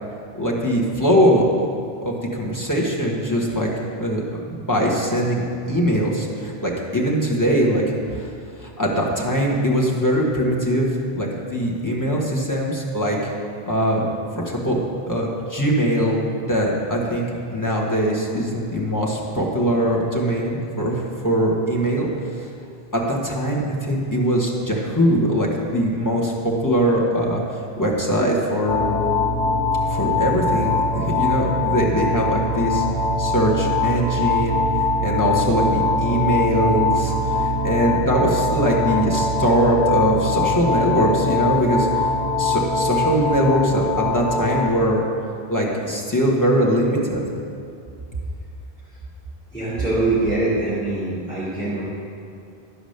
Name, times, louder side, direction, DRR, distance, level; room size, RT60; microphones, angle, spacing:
voice 1, 0.4-1.7 2.0-4.2 4.6-7.8 8.1-8.3 8.6-10.9 11.1-13.3 13.7-14.1 14.4-14.8 15.1-16.2 16.5-17.2 17.5-22.4 22.9-27.4 27.8-28.9 29.9-32.8 33.2-34.6 35.0-41.9 42.4-45.0 45.5-47.2, equal, 20° left, -2 dB, 1.3 m, -21 dB
sound 1, 28.7-44.7, left 3 dB, 45° left, 1.2 m, -22 dB
voice 2, 49.5-51.8, right 2 dB, 5° right, -12 dB, 2.7 m, -24 dB
11.5 x 5.1 x 6.6 m, 2.4 s
omnidirectional pair, 1.0 m